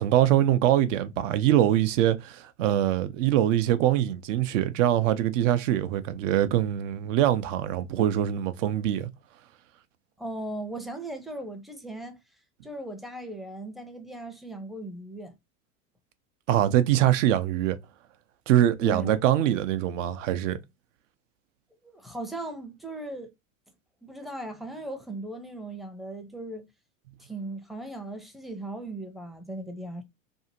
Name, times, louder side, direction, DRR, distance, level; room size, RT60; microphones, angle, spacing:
voice 1, 0.0-9.1 16.5-17.8 18.5-20.6, right 12 dB, 65° right, 0.6 m, -23 dB
voice 2, 10.2-12.2 12.6-15.4 18.8-19.1 21.8-23.3 24.0-26.7 27.2-30.0, right 1 dB, ahead, 0.5 m, -37 dB
2.7 x 2.5 x 2.6 m
hypercardioid pair, 100°, 41 cm